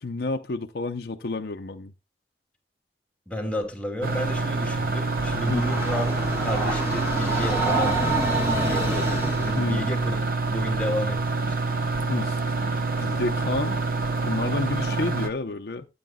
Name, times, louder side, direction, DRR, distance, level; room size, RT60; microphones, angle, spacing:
voice 1, 0.0-1.9 5.5-5.8 9.6-9.9 12.1-12.4 13.0-13.8 14.2-15.9, left 3 dB, 60° left, 0.6 m, -30 dB
voice 2, 3.3-10.2 10.5-11.7, left 1 dB, 10° left, 2.5 m, -32 dB
sound 1, 4.0-15.3, right 3 dB, 55° right, 0.9 m, -27 dB
Train, 4.8-9.7, right 1 dB, 15° right, 3.1 m, -27 dB
13.0 x 8.7 x 2.2 m
head